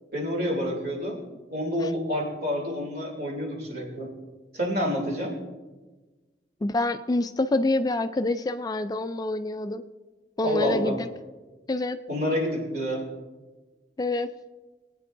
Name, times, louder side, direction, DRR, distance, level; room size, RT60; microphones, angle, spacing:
voice 1, 0.1-1.2 1.5-4.1 4.5-5.4 10.4-11.0 12.1-13.1, equal, 60° right, -1 dB, 3.0 m, -28 dB
voice 2, 6.6-9.8 10.4-11.1 11.7-12.0 14.0-14.3, left 2 dB, 20° left, 10 dB, 0.3 m, -26 dB
21.0 x 9.2 x 2.6 m, 1.3 s
head